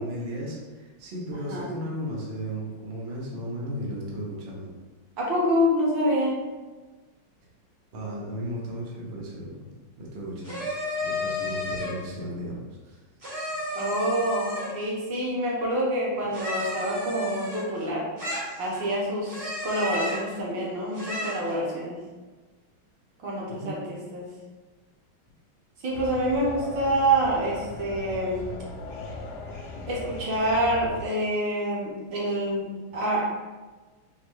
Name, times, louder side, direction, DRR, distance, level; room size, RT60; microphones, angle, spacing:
voice 1, 0.0-4.7 7.9-9.7 10.0-10.6 11.0-13.0 23.5-23.8, equal, 85° right, -4 dB, 0.5 m, -35 dB
voice 2, 5.2-6.3 13.7-18.0 18.6-22.0 23.2-24.3 25.8-28.4 29.9-33.2, right 1 dB, 65° right, -4 dB, 1.5 m, -27 dB
sound 1, 10.4-12.0 13.2-14.8 16.3-17.8 18.2-18.9 19.3-20.3 20.9-21.5, left 1 dB, 30° right, 0.6 m, -32 dB
sound 2, 25.9-31.0, left 2 dB, 75° left, 1.4 m, -39 dB
4.5 x 2.2 x 3.0 m, 1.3 s
omnidirectional pair, 2.3 m